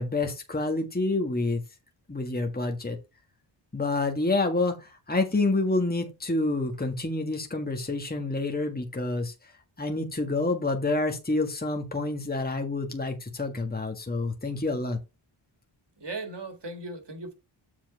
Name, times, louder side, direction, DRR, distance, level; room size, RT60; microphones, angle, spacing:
voice 1, 0.0-1.6 2.1-3.0 3.7-9.5 9.8-15.0, left 2 dB, 20° left, 1.6 m, -28 dB
voice 2, 16.0-17.3, right 2 dB, 55° right, 2.4 m, -37 dB
7.3 x 4.3 x 5.3 m
cardioid pair, 50°, 49 cm